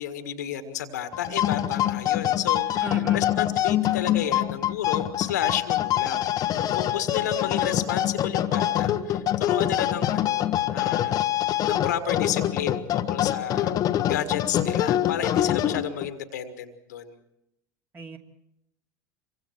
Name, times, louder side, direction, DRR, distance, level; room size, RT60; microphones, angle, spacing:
voice 1, 0.0-13.7 14.1-17.2, left 9 dB, 70° left, 9 dB, 1.7 m, -32 dB
sound 1, 1.1-16.1, left 12 dB, 40° left, 1.1 m, -25 dB
voice 2, 2.8-3.2 17.9-18.2, right 3 dB, 20° right, 2 dB, 2.7 m, -36 dB
27.0 x 24.0 x 4.6 m, 0.85 s
figure-of-eight pair, 75°, 10 cm